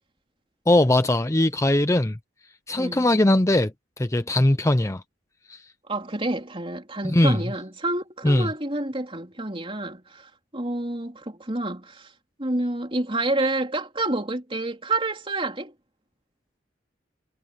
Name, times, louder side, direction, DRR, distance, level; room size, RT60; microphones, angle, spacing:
voice 1, 0.7-2.2 2.7-3.7 4.0-5.0 5.5-5.6 7.0-7.4 8.2-8.5, left 1 dB, 15° left, 0.7 m, -20 dB
voice 2, 2.8-3.1 5.9-12.1 12.4-15.7, right 2 dB, 30° right, 3.7 m, -28 dB
head